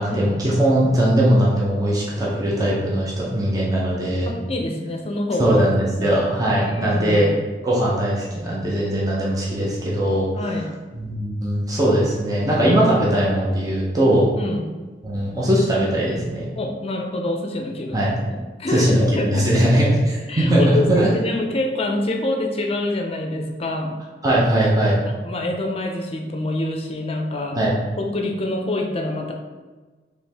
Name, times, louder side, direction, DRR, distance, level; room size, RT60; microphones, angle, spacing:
voice 1, 0.0-4.3 5.4-7.3 7.6-10.3 10.9-14.3 15.0-16.5 17.9-18.1 18.7-21.1 24.2-25.0 27.5-27.7, right 1 dB, 20° right, -5 dB, 0.8 m, -20 dB
voice 2, 4.3-5.6 5.9-6.1 6.5-7.3 10.4-10.7 14.4-14.7 16.5-19.7 20.3-23.9 25.1-27.6 28.0-29.3, left 1 dB, 35° left, 2 dB, 0.6 m, -26 dB
4.5 x 3.2 x 3.4 m, 1.3 s
head